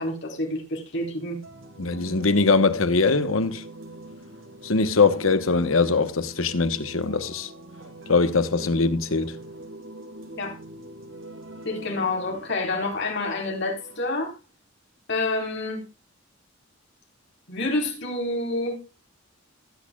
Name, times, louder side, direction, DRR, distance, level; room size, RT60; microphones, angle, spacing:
voice 1, 0.0-1.4 10.4-10.5 11.6-14.3 15.1-15.9 17.5-18.8, left 2 dB, 60° left, 4.2 m, -28 dB
sound 1, 1.4-14.1, right 1 dB, 80° right, 2.0 m, -43 dB
voice 2, 1.8-3.6 4.6-7.5 8.1-9.3, left 4 dB, 90° left, 1.2 m, -22 dB
21.0 x 8.6 x 2.4 m
head